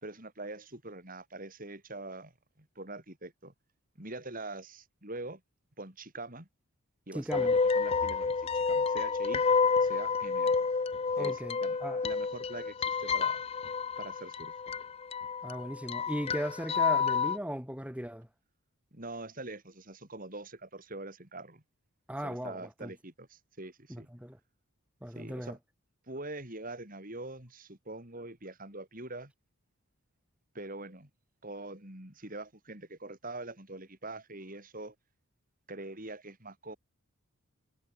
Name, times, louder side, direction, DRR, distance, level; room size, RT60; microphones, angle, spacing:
voice 1, 0.0-2.3 2.6-3.5 4.0-5.4 5.8-6.5 7.1-9.4 9.8-10.6 11.2-11.8 12.0-13.4 14.0-14.5 18.9-21.6 22.2-24.1 25.1-25.6 26.1-29.3 30.5-31.1 31.4-34.9 35.7-36.8, right 2 dB, 40° right, 4.6 m, -44 dB
voice 2, 7.1-7.6 11.2-12.1 15.4-18.3 22.1-22.9 23.9-24.4 25.0-25.6, equal, 5° right, 4.1 m, -37 dB
sound 1, 7.3-17.4, left 5 dB, 25° left, 0.4 m, -29 dB
head